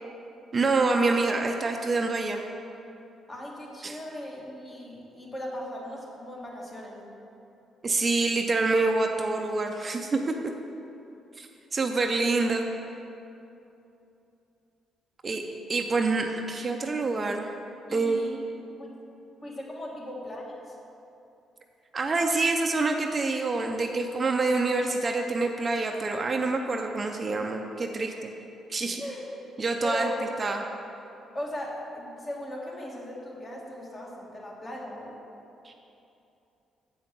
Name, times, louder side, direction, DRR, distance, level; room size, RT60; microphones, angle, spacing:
voice 1, 0.5-2.5 3.8-4.0 7.8-10.3 11.4-12.7 15.2-17.5 17.9-18.2 21.9-28.3 28.7-29.0 29.6-30.1 30.4-30.6 35.6-35.8, right 3 dB, 35° right, 3 dB, 0.6 m, -26 dB
voice 2, 3.3-7.1 17.9-18.3 18.7-18.9 19.4-20.8 28.0-28.1 29.0-29.2 29.8-30.3 31.3-35.2, left 1 dB, 30° left, -3 dB, 1.9 m, -38 dB
7.8 x 5.2 x 5.9 m, 2.8 s
cardioid pair, 90°, 0 cm